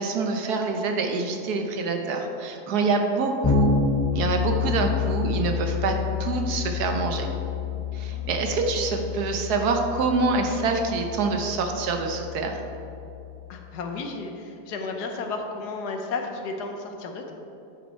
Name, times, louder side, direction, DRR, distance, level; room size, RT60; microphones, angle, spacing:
voice 1, 0.0-3.8 4.1-7.3 7.9-12.6, right 4 dB, 75° right, 4 dB, 1.3 m, -26 dB
Bass guitar, 3.4-13.1, left 6 dB, 15° left, 1.0 m, -28 dB
voice 2, 13.5-17.3, left 3 dB, 75° left, 3 dB, 1.4 m, -33 dB
9.8 x 5.6 x 4.4 m, 2.8 s
omnidirectional pair, 1.7 m